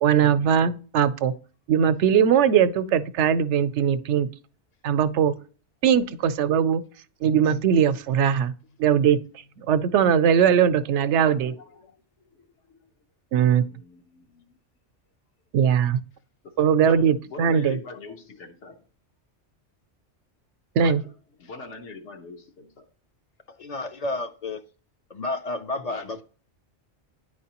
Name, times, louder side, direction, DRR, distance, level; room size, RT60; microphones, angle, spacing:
voice 1, 0.0-1.3 1.7-4.3 4.8-5.3 5.8-6.8 7.2-8.5 8.8-9.2 9.6-11.5 13.3-13.6 15.5-16.0 16.6-17.8 20.8-21.0, right 8 dB, 80° right, 0.9 m, -20 dB
voice 2, 10.8-12.0 12.3-12.5 12.8-12.9 13.4-14.6 16.4-18.8 20.8-21.0 21.4-22.9 25.8-26.2, left 4 dB, 80° left, 1.2 m, -43 dB
voice 3, 23.5-24.6 25.1-26.2, left 2 dB, 55° left, 0.4 m, -31 dB
9.9 x 4.7 x 2.9 m
omnidirectional pair, 1.2 m